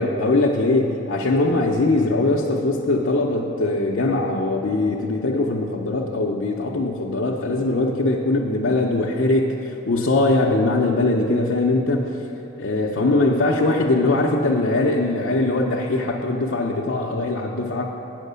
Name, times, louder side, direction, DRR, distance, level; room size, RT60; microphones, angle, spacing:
voice 1, 0.0-12.1 12.6-17.9, left 2 dB, 60° left, -3 dB, 0.6 m, -21 dB
9.1 x 5.8 x 6.7 m, 3.0 s
head